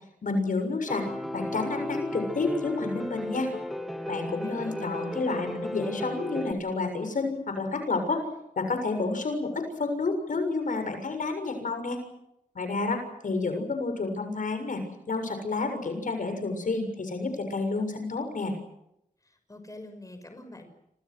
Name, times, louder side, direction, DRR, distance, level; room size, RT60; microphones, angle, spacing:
voice 1, 0.2-1.1 1.3-3.5 4.1-8.3 8.5-12.0 12.5-14.8 15.1-18.5, left 3 dB, 70° left, 6 dB, 6.9 m, -30 dB
Piano, 0.9-6.5, left 1 dB, ahead, 3.0 m, -35 dB
voice 2, 4.4-5.3 19.2-20.7, left 1 dB, 25° left, 7 dB, 6.0 m, -45 dB
28.5 x 27.0 x 6.3 m, 0.81 s
wide cardioid pair, 100°, 14 cm